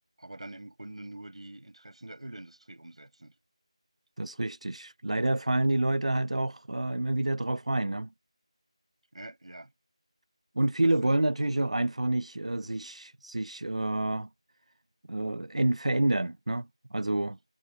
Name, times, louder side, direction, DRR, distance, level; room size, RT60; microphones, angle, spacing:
voice 1, 0.2-3.3 9.1-9.7 10.8-11.1, right 1 dB, 75° right, 6.7 m, -45 dB
voice 2, 4.2-8.1 10.6-14.3 15.1-17.4, right 2 dB, 90° right, 0.6 m, -28 dB
figure-of-eight pair, 175°, 3 cm